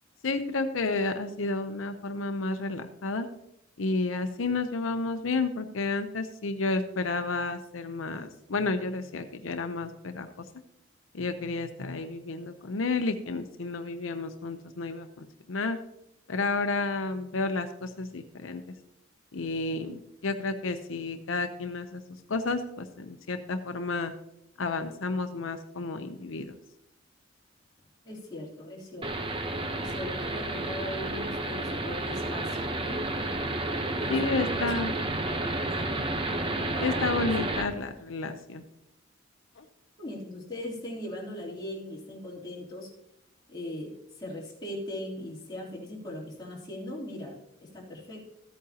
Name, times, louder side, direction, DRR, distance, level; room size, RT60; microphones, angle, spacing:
voice 1, 0.2-3.3 3.8-10.4 11.1-15.8 16.3-18.7 19.3-22.0 22.3-24.1 24.6-26.6 34.1-34.9 36.8-38.6 39.6-39.7, left 3 dB, 90° left, 8 dB, 0.7 m, -31 dB
voice 2, 28.0-29.2 29.8-33.0 34.0-34.7 35.6-36.0 36.7-37.5 40.0-42.9 43.5-47.4 47.7-48.2, left 1 dB, 20° left, -5 dB, 3.2 m, -39 dB
sound 1, 29.0-37.6, right 2 dB, 25° right, 0.9 m, -31 dB
14.5 x 8.6 x 2.9 m, 0.82 s
head